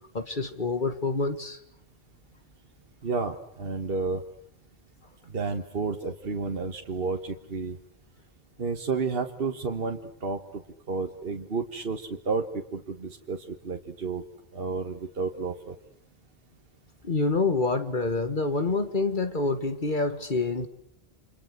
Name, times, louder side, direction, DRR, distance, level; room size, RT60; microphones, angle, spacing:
voice 1, 0.1-1.6 17.0-20.7, left 3 dB, 55° left, 9 dB, 1.9 m, -27 dB
voice 2, 3.0-4.2 5.3-7.8 8.6-10.6 10.9-14.2 14.5-15.8, right 4 dB, 65° right, 4 dB, 1.6 m, -31 dB
30.0 x 27.0 x 6.6 m, 0.73 s
omnidirectional pair, 1.0 m